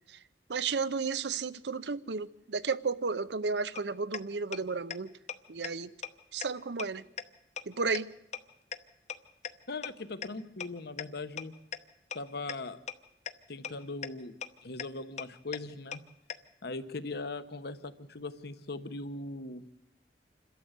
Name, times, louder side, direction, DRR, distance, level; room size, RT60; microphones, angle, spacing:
voice 1, 0.5-5.1 5.5-5.9 6.3-7.0 7.7-8.1, right 4 dB, 70° right, 0.7 m, -33 dB
sound 1, 3.7-3.8 4.1-4.2 4.5-4.6 4.9-5.0 5.3-5.4 5.6-5.7 6.0-6.1 6.4-6.5 6.8-6.9 7.2-7.3 7.6-7.7 7.9-8.0 8.3-8.4 8.7-8.8 9.1-9.2 9.4-9.5 9.8-9.9 10.2-10.3 10.6-10.7 11.0-11.1 11.4-11.5 11.7-11.8 12.1-12.2 12.5-12.6 12.9-13.0 13.3-13.4 13.6-13.7 14.0-14.1 14.4-14.5 14.8-14.9 15.2-15.3 15.5-15.6 15.9-16.0 16.3-16.4, left 7 dB, 40° left, 0.9 m, -36 dB
voice 2, 9.7-11.5 12.1-12.8 13.5-14.3 14.6-16.0 16.6-19.6, left 3 dB, 60° left, 1.1 m, -39 dB
27.0 x 13.0 x 8.1 m
head